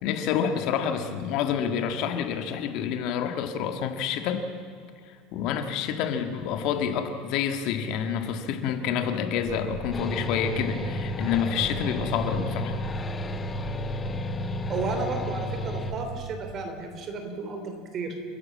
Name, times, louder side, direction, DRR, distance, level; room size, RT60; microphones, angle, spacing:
voice 1, 0.0-4.4 5.1-12.8, left 8 dB, 50° left, 7 dB, 1.7 m, -28 dB
sound 1, 9.4-16.2, right 1 dB, 5° right, 6.3 m, -38 dB
sound 2, 9.9-15.9, left 1 dB, 15° left, 0.9 m, -32 dB
voice 2, 14.7-18.1, right 3 dB, 30° right, 5 dB, 3.3 m, -33 dB
30.0 x 11.0 x 8.5 m, 2.4 s
cardioid pair, 165°, 0 cm